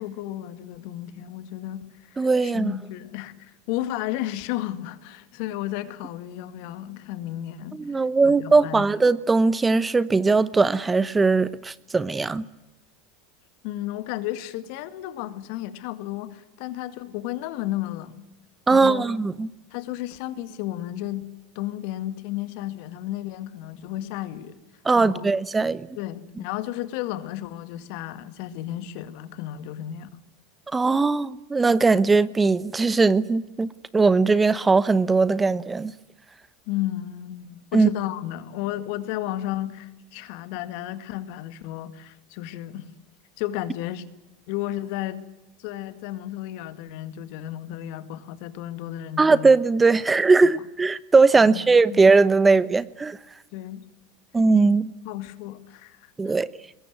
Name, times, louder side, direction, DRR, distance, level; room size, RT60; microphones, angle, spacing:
voice 1, 0.0-8.9 13.6-18.3 18.7-19.1 19.7-21.3 21.6-24.6 25.0-25.3 26.0-30.2 36.7-42.9 43.4-44.1 44.5-45.2 45.6-49.5 51.4-52.0 53.5-53.9 55.0-56.4, left 14 dB, 60° left, 2.0 m, -33 dB
voice 2, 2.2-2.7 7.8-12.4 18.7-19.5 24.8-25.9 30.7-35.9 37.7-37.9 49.2-53.2 54.3-54.9 56.2-56.5, right 4 dB, 15° right, 0.9 m, -19 dB
23.0 x 21.5 x 9.4 m
hypercardioid pair, 85°, 0 cm